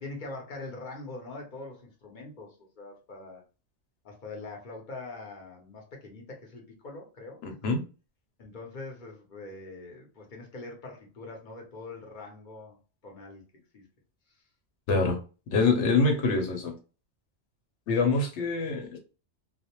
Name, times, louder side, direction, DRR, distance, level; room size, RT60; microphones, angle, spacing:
voice 1, 0.0-3.4 4.0-7.4 8.4-13.4 13.7-13.9 14.3-14.4, left 3 dB, 50° left, 0 dB, 0.8 m, -43 dB
voice 2, 7.4-7.8 14.9-15.2 15.5-16.7 17.9-19.0, left 3 dB, 85° left, 4 dB, 1.0 m, -25 dB
2.5 x 2.0 x 2.8 m, 0.34 s
omnidirectional pair, 1.2 m